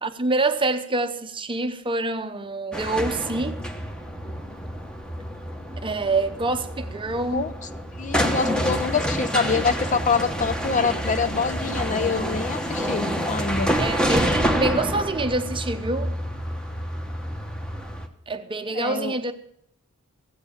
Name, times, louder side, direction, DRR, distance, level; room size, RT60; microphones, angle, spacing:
voice 1, 0.0-3.7 5.8-7.4 13.8-16.1 18.3-19.3, right 2 dB, 25° right, 0.8 m, -26 dB
sound 1, 2.7-18.1, equal, 5° left, 1.1 m, -28 dB
voice 2, 8.0-13.7 18.7-19.2, left 5 dB, 35° left, 0.6 m, -25 dB
15.5 x 8.3 x 7.0 m
head